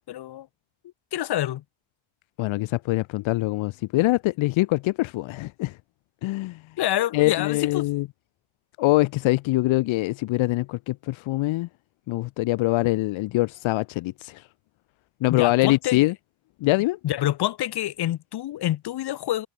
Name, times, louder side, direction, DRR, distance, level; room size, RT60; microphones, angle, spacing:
voice 1, 0.1-0.5 1.1-1.6 6.8-7.9 15.3-16.1 17.0-19.5, left 13 dB, 55° left, 6.3 m, -27 dB
voice 2, 2.4-5.7 6.2-6.6 7.1-8.1 8.8-11.7 12.1-14.4 15.2-16.1 16.6-17.0, left 19 dB, 85° left, 2.3 m, -23 dB
cardioid pair, 170°, 46 cm